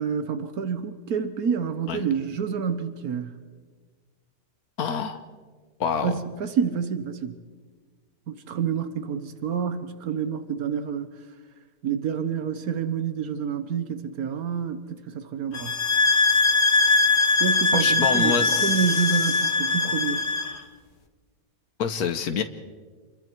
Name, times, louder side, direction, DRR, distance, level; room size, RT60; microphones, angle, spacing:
voice 1, 0.0-3.3 6.0-7.3 8.3-11.1 11.8-15.7 17.4-20.2, right 7 dB, 80° right, 10 dB, 1.5 m, -28 dB
voice 2, 4.8-5.2 5.8-6.1 17.7-19.5 21.8-22.4, left 6 dB, 90° left, 8 dB, 1.5 m, -27 dB
sound 1, 15.5-20.6, left 3 dB, 50° left, 1.6 m, -21 dB
28.5 x 22.0 x 4.6 m, 1.5 s
omnidirectional pair, 1.5 m